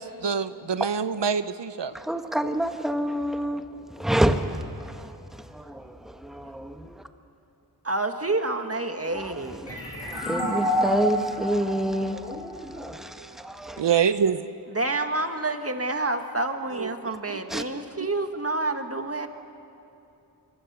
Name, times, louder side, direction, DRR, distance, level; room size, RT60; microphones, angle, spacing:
voice 1, 0.0-1.9 13.2-13.3 13.8-14.5 16.7-16.9, right 7 dB, 80° right, 12 dB, 0.7 m, -25 dB
voice 2, 2.1-3.6 4.0-4.6 5.5-5.8 6.2-6.7 10.1-13.1 13.4-13.8 17.5-17.6, right 1 dB, ahead, 7 dB, 1.3 m, -27 dB
voice 3, 7.8-9.7 14.7-19.3, right 2 dB, 35° right, 6 dB, 1.8 m, -28 dB
sound 1, 9.7-13.1, equal, 90° left, 5.9 m, -29 dB
25.5 x 23.5 x 6.9 m, 2.8 s
wide cardioid pair, 55°, 42 cm